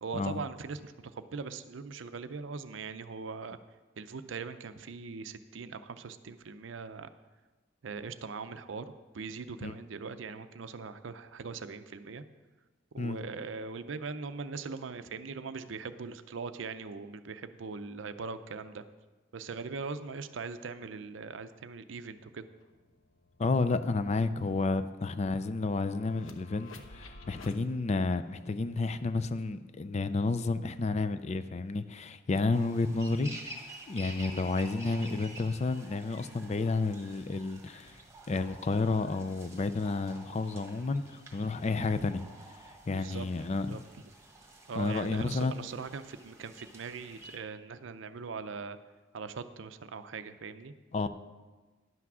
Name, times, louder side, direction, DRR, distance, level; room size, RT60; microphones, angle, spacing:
voice 1, 0.0-3.6 4.0-7.1 7.8-12.2 12.9-18.8 19.3-22.5 42.9-43.8 44.7-48.8 49.1-50.7, right 4 dB, 70° right, 0.5 m, -41 dB
sound 1, 22.2-22.3 22.6-27.6, left 3 dB, 85° left, 0.9 m, -54 dB
voice 2, 23.4-33.3 33.9-38.0 38.3-42.2 42.9-43.8 44.8-45.6 50.9-51.1, left 3 dB, 35° left, 0.4 m, -31 dB
sound 2, 32.5-47.4, right 1 dB, 15° right, 1.4 m, -50 dB
11.0 x 5.9 x 6.1 m
head